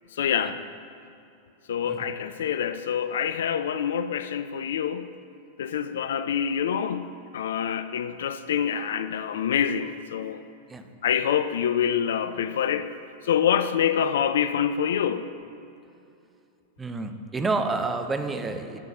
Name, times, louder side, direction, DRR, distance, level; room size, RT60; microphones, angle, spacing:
voice 1, 0.1-0.6 1.7-5.1 5.6-10.4 11.0-12.9 13.2-15.2, left 8 dB, 60° left, 12 dB, 0.3 m, -26 dB
voice 2, 16.8-18.8, right 3 dB, 15° right, 7 dB, 0.6 m, -29 dB
11.5 x 4.0 x 5.7 m, 2.6 s
figure-of-eight pair, 90°, 0 cm